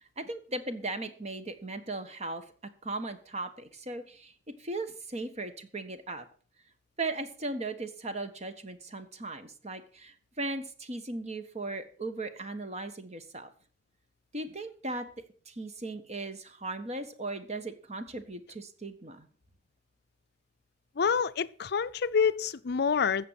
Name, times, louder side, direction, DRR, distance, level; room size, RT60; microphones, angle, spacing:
voice 1, 0.2-2.4 2.8-4.3 4.6-6.3 7.0-13.5 14.3-15.1 15.5-19.3, right 2 dB, 40° right, 1.4 m, -37 dB
voice 2, 21.0-23.3, left 6 dB, 60° left, 0.5 m, -27 dB
13.5 x 7.7 x 5.8 m
head